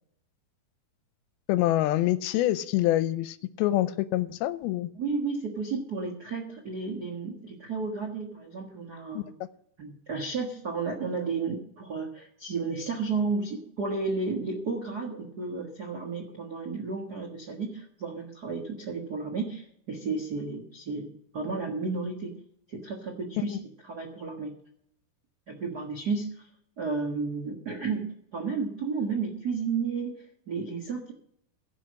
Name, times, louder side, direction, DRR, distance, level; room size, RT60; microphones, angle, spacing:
voice 1, 1.5-4.9 9.2-9.3, left 14 dB, 85° left, 14 dB, 2.5 m, -26 dB
voice 2, 4.9-9.3 9.8-22.3 22.7-23.6 23.9-24.6 25.5-26.5 26.8-31.1, right 4 dB, 60° right, 1 dB, 1.0 m, -32 dB
16.0 x 6.3 x 6.4 m, 0.69 s
omnidirectional pair, 4.4 m